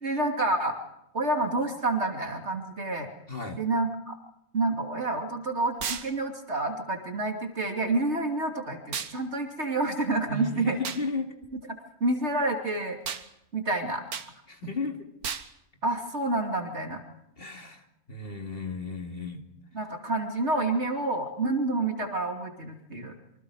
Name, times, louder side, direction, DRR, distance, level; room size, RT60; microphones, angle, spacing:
voice 1, 0.0-0.8 1.1-3.1 3.6-4.1 4.5-10.8 11.7-13.0 13.5-14.0 15.8-17.0 19.7-23.1, right 2 dB, 50° right, 3 dB, 3.0 m, -28 dB
voice 2, 3.3-3.6 10.3-11.3 14.5-15.0 17.4-19.4, left 3 dB, 40° left, 3 dB, 2.6 m, -34 dB
sound 1, 5.8-6.1 8.9-9.2 10.8-11.0 13.1-13.3 14.1-14.3 15.2-15.5, right 7 dB, 85° right, 1.7 m, -33 dB
27.0 x 24.5 x 4.9 m, 0.82 s
omnidirectional pair, 1.5 m